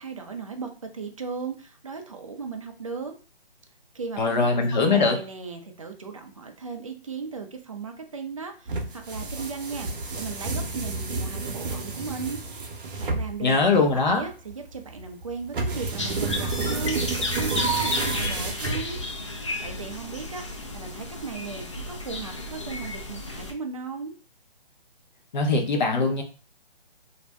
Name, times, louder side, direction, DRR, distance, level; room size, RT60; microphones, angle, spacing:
voice 1, 0.0-3.1 3.9-12.4 13.0-19.0 19.6-24.1, right 5 dB, 35° right, 4 dB, 0.4 m, -36 dB
voice 2, 4.2-5.2 13.4-14.2 25.3-26.2, left 4 dB, 45° left, 3 dB, 0.8 m, -21 dB
sound 1, 8.7-19.3, right 3 dB, 60° right, 0.8 m, -30 dB
sound 2, 16.0-23.5, left 2 dB, 30° left, 0.4 m, -33 dB
2.5 x 2.1 x 3.4 m, 0.36 s
figure-of-eight pair, 150°, 31 cm